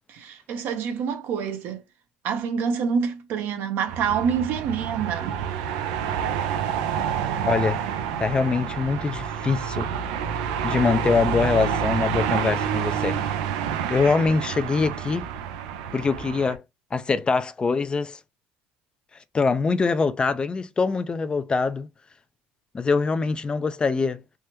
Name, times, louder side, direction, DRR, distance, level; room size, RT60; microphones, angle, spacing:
voice 1, 0.1-1.8 2.2-5.4, right 6 dB, 65° right, 0.8 m, -27 dB
sound 1, 3.9-16.6, right 8 dB, 85° right, 0.5 m, -28 dB
voice 2, 7.4-7.8 8.2-9.9 10.6-13.2 13.9-15.2 15.9-16.6 16.9-18.2 19.3-21.9 22.7-24.2, left 4 dB, 25° left, 0.4 m, -23 dB
3.4 x 2.1 x 2.9 m
supercardioid pair, 85°, 4 cm